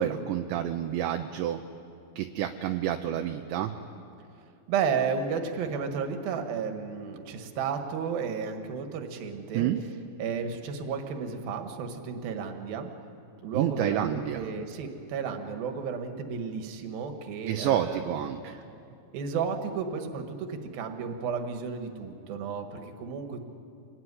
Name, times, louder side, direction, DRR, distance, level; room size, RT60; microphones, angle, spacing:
voice 1, 0.0-1.6 2.2-3.7 9.5-9.8 13.5-14.5 17.5-18.6, right 11 dB, 80° right, 5 dB, 2.8 m, -29 dB
voice 2, 4.7-9.7 10.2-12.9 13.4-18.0 19.1-23.5, right 6 dB, 60° right, 5 dB, 3.0 m, -33 dB
26.5 x 21.0 x 9.8 m, 2.6 s
omnidirectional pair, 5.7 m